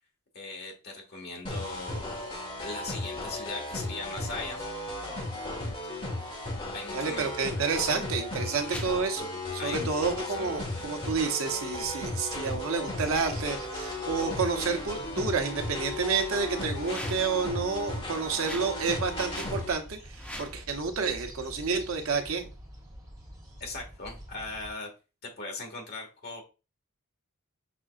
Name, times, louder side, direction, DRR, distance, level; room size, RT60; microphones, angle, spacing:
voice 1, 0.3-2.1 2.6-4.7 6.7-7.3 8.4-8.7 9.6-9.9 10.3-10.5 23.6-24.9 25.2-26.4, left 3 dB, 45° left, 1 dB, 1.6 m, -39 dB
sound 1, 1.4-19.7, left 1 dB, 25° left, 1.4 m, -35 dB
voice 2, 6.9-9.3 9.6-20.0 20.4-22.5, right 5 dB, 70° right, 6 dB, 0.8 m, -30 dB
sound 2, 7.9-8.1 8.6-9.0 10.6-11.0 11.7-11.9 12.9-13.3 14.5-15.2 16.7-17.4 18.3-18.8 19.2-19.6 20.1-20.6, left 1 dB, 5° left, 0.7 m, -44 dB
sound 3, 12.7-24.7, equal, 15° right, 2.5 m, -47 dB
6.0 x 3.7 x 2.4 m, 0.30 s
head